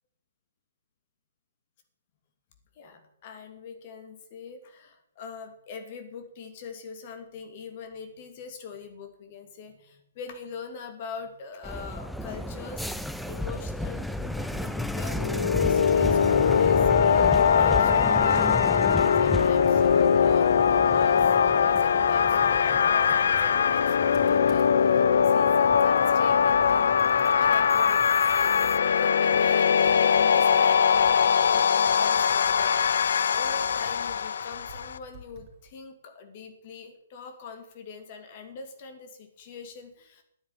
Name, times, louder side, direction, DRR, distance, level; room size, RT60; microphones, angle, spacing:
voice 1, 2.7-40.2, left 5 dB, 40° left, 6 dB, 2.7 m, -43 dB
sound 1, 11.6-28.8, left 1 dB, ahead, 0.6 m, -34 dB
sound 2, 15.1-35.0, left 7 dB, 60° left, 0.5 m, -21 dB
Computer keyboard, 23.8-24.9 25.4-25.5 25.8-29.1 29.3-35.8, right 3 dB, 30° right, 4.0 m, -50 dB
9.8 x 9.8 x 9.0 m, 0.71 s
figure-of-eight pair, 130°, 0 cm